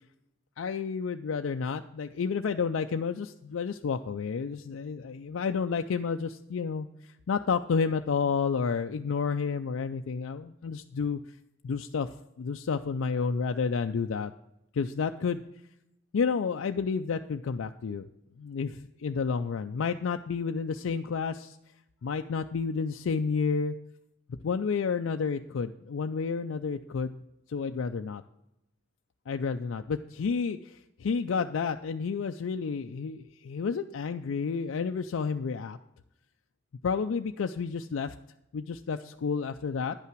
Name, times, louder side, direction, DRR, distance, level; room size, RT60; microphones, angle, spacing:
voice 1, 0.6-11.2 11.6-12.1 12.4-14.3 14.7-15.4 16.1-18.1 18.4-21.6 22.0-23.7 24.4-27.2 27.5-28.2 29.3-35.8 36.8-38.1 38.5-40.0, left 5 dB, 75° left, 6 dB, 0.4 m, -30 dB
10.5 x 5.7 x 6.0 m, 0.84 s
head